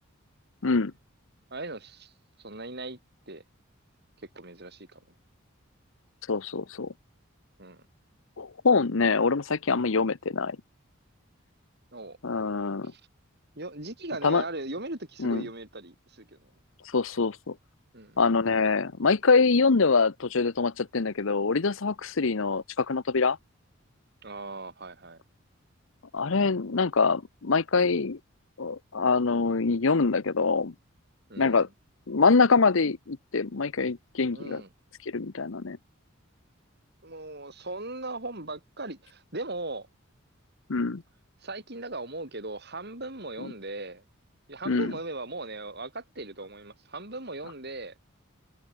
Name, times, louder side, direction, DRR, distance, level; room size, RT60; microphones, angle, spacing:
voice 1, 1.5-2.1 2.4-3.0 3.3-3.4 4.3-5.0 7.6-7.8 11.9-12.2 12.8-13.0 13.6-16.5 17.9-18.2 24.2-25.2 31.3-31.7 34.3-34.7 37.0-39.9 41.4-44.0 44.5-48.0, right 2 dB, 50° right, 6.2 m, -38 dB
voice 2, 6.3-6.9 8.4-10.6 12.2-12.9 14.2-14.4 15.2-15.5 16.9-17.5 18.2-23.4 26.1-28.2 28.6-30.7 31.4-31.7 32.1-34.6 35.1-35.8 40.7-41.0 43.4-43.5 44.7-44.9, left 4 dB, 65° left, 0.8 m, -24 dB
head